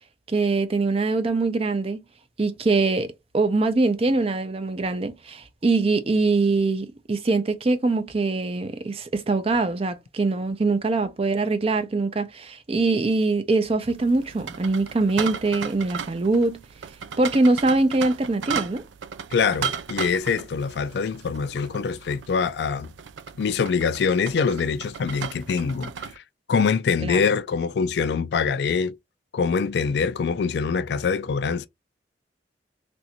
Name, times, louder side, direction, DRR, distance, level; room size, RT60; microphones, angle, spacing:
voice 1, 0.3-2.0 2.4-16.6 17.2-18.8 27.0-27.2, right 3 dB, 35° right, 0.5 m, -23 dB
sound 1, 13.8-26.2, right 7 dB, 85° right, 0.4 m, -36 dB
voice 2, 19.3-22.9 23.4-25.9 26.5-29.0 29.3-31.7, left 5 dB, 60° left, 0.3 m, -24 dB
3.2 x 2.6 x 2.9 m
head